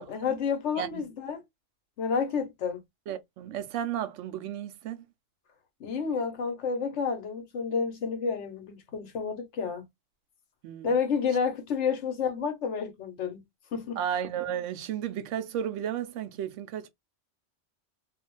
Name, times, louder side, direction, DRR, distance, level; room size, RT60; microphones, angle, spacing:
voice 1, 0.0-1.4 2.0-2.8 5.8-9.8 10.8-13.4 13.7-14.0, left 6 dB, 75° left, 1.1 m, -30 dB
voice 2, 3.1-5.0 10.6-10.9 14.0-16.9, right 10 dB, 90° right, 0.9 m, -33 dB
2.6 x 2.4 x 2.9 m
omnidirectional pair, 1.2 m